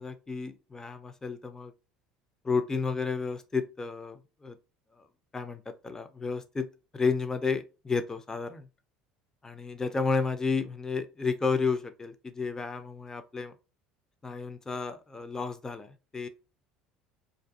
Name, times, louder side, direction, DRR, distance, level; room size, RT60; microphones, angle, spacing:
voice 1, 0.0-1.7 2.4-4.6 5.0-5.1 5.3-6.7 6.9-8.7 9.4-13.6 14.2-16.3, left 4 dB, 20° left, 0.4 m, -32 dB
2.4 x 2.2 x 2.4 m
hypercardioid pair, 70°, 3 cm